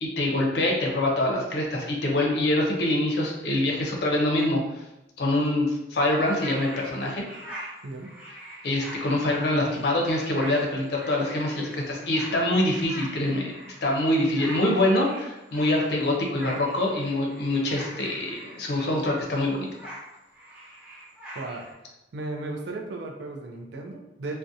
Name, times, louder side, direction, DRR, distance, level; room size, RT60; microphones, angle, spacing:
voice 1, 0.0-4.8 5.2-7.2 8.6-19.7, left 1 dB, 65° left, -1 dB, 0.5 m, -25 dB
sound 1, 6.2-19.2 19.6-21.7, right 1 dB, 5° right, 0.5 m, -43 dB
voice 2, 21.3-21.9 22.1-24.4, right 2 dB, 70° right, 1 dB, 0.4 m, -35 dB
2.4 x 2.1 x 2.6 m, 0.94 s
head